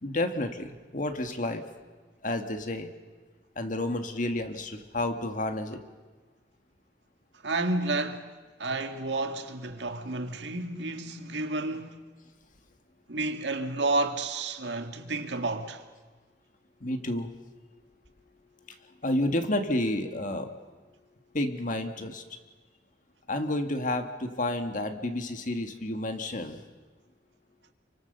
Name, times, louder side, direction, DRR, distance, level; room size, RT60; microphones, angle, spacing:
voice 1, 0.0-1.6 2.2-2.9 3.6-5.8 10.4-10.5 10.7-10.9 16.8-17.7 18.7-18.8 19.0-20.5 21.3-22.2 23.3-26.6, left 1 dB, 45° left, 1.7 m, -30 dB
voice 2, 7.4-8.3 8.6-12.0 13.1-15.8, right 2 dB, 80° right, 2.0 m, -31 dB
29.0 x 24.0 x 6.7 m
head